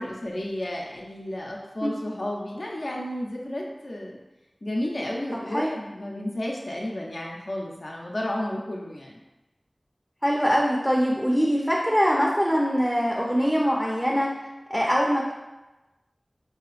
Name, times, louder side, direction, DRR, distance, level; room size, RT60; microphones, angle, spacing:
voice 1, 0.0-4.2 4.6-9.2, left 1 dB, 75° left, -2 dB, 0.6 m, -32 dB
voice 2, 1.8-2.2 5.5-5.7 10.2-14.3 14.7-15.3, equal, ahead, -3 dB, 0.5 m, -23 dB
4.7 x 2.8 x 2.4 m, 1.1 s
wide cardioid pair, 45°, 0 cm